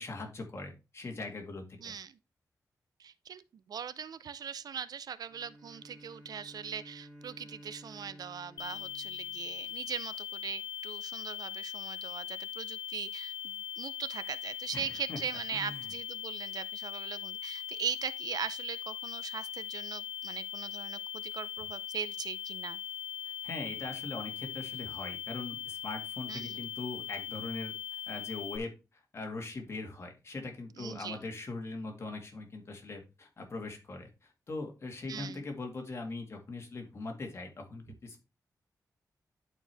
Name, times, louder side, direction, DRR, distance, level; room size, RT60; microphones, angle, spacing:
voice 1, 0.0-1.9 14.7-15.2 15.5-15.8 23.4-27.7 28.1-34.1 34.5-38.2, left 3 dB, 40° left, 1.9 m, -41 dB
voice 2, 1.8-2.2 3.0-22.8 26.3-26.6 30.8-31.2 35.1-35.5, right 7 dB, 70° right, 0.5 m, -40 dB
Bowed string instrument, 5.3-10.1, equal, 10° left, 3.0 m, -54 dB
sound 1, 8.6-28.6, left 10 dB, 85° left, 0.7 m, -40 dB
11.0 x 4.5 x 3.4 m
wide cardioid pair, 145°, 7 cm